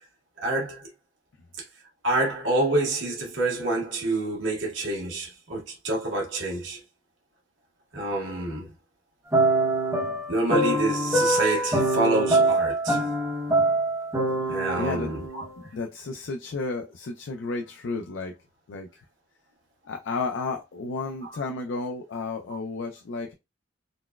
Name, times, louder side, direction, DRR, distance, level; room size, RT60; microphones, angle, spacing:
voice 1, 0.4-0.9 2.0-6.8 7.9-8.7 10.3-13.0 14.5-15.4, right 2 dB, 85° right, 1.3 m, -27 dB
sound 1, 9.3-15.7, right 2 dB, 15° right, 0.8 m, -24 dB
voice 2, 14.8-15.1 15.7-18.3 18.7-18.9 19.9-23.3, left 3 dB, 75° left, 0.4 m, -32 dB
4.0 x 2.2 x 2.2 m
head